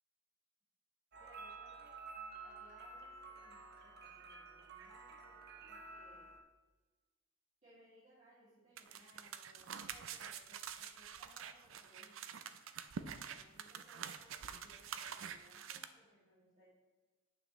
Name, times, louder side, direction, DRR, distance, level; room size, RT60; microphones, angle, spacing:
sound 1, 1.1-6.4, right 4 dB, 55° right, 0.9 m, -52 dB
voice 1, 1.2-2.0 2.4-6.3 7.6-12.3 12.9-16.7, right 1 dB, 35° right, -10 dB, 2.5 m, -66 dB
sound 2, 8.8-15.8, right 7 dB, 75° right, 0.5 m, -47 dB
9.1 x 7.1 x 3.2 m, 1.3 s
head